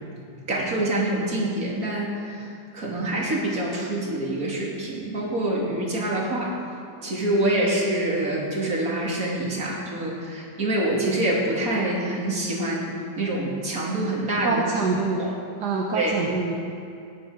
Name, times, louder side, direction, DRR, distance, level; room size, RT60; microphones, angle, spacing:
voice 1, 0.5-2.5 2.7-6.5 7.0-14.6 15.2-15.3 15.9-16.3, right 1 dB, 55° right, -3 dB, 3.1 m, -26 dB
voice 2, 14.4-15.3 15.6-16.5, right 4 dB, 75° right, 0 dB, 1.7 m, -25 dB
17.5 x 11.5 x 5.1 m, 2.5 s
omnidirectional pair, 1.8 m